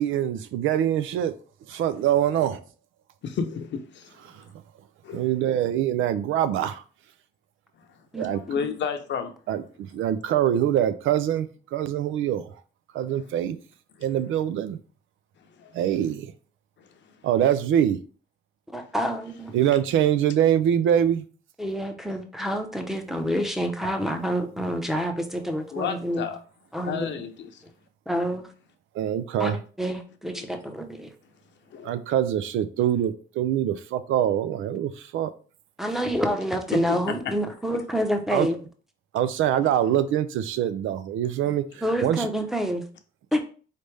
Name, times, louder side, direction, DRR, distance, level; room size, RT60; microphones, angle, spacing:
voice 1, 0.0-1.3 1.7-2.6 5.1-6.8 8.2-8.4 9.5-9.6 9.9-12.5 12.9-13.6 14.0-14.8 15.7-16.3 17.2-18.0 19.5-21.2 29.0-29.6 31.8-35.3 38.3-38.5 39.1-41.7 42.0-42.3, right 10 dB, 85° right, 0.5 m, -24 dB
voice 2, 3.2-4.5 5.0-5.3 7.7-8.1 8.3-9.3 13.1-13.3 13.9-14.1 15.4-15.8 16.8-17.3 18.8-18.9 25.7-26.4 26.9-27.6 30.3-30.6 31.6-31.9 36.7-37.4 37.7-37.8 39.6-39.7 41.4-41.5 42.4-42.5, left 6 dB, 65° left, 0.7 m, -33 dB
voice 3, 18.7-19.5 21.6-26.3 26.7-27.1 28.1-28.5 29.4-31.1 35.8-38.6 41.8-42.8 43.3-43.4, equal, ahead, 0.8 m, -28 dB
4.1 x 3.3 x 3.3 m
cardioid pair, 90°, 20 cm